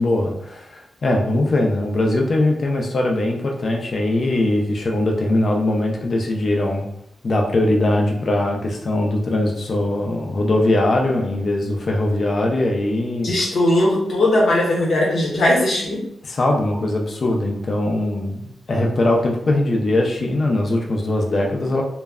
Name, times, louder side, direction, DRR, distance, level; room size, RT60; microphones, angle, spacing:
voice 1, 0.0-6.9 7.2-13.4 16.2-21.8, left 1 dB, 40° left, 0 dB, 0.5 m, -21 dB
voice 2, 13.2-16.0, left 1 dB, 70° left, -3 dB, 0.9 m, -18 dB
2.2 x 2.1 x 3.4 m, 0.76 s
wide cardioid pair, 170°, 0 cm